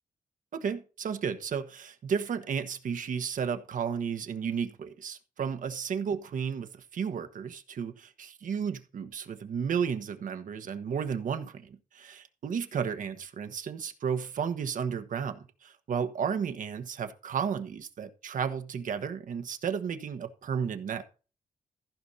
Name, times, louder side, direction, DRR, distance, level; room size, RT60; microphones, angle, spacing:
voice 1, 0.5-21.0, right 7 dB, 75° right, 1.4 m, -33 dB
15.0 x 5.4 x 4.2 m
cardioid pair, 75°, 14 cm